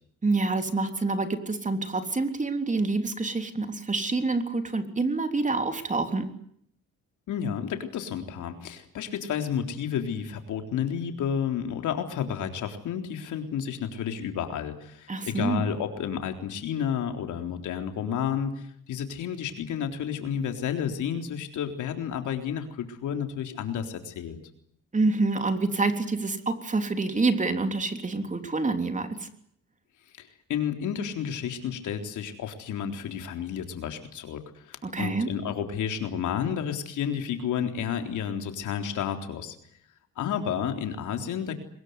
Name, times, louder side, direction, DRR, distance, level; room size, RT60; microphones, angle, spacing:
voice 1, 0.2-6.3 15.1-15.6 24.9-29.3 34.8-35.3, right 3 dB, 25° right, 7 dB, 3.4 m, -27 dB
voice 2, 7.3-24.4 30.2-39.6 40.2-41.5, left 8 dB, 80° left, 6 dB, 3.8 m, -31 dB
22.5 x 21.5 x 9.6 m, 0.69 s
cardioid pair, 90°, 30 cm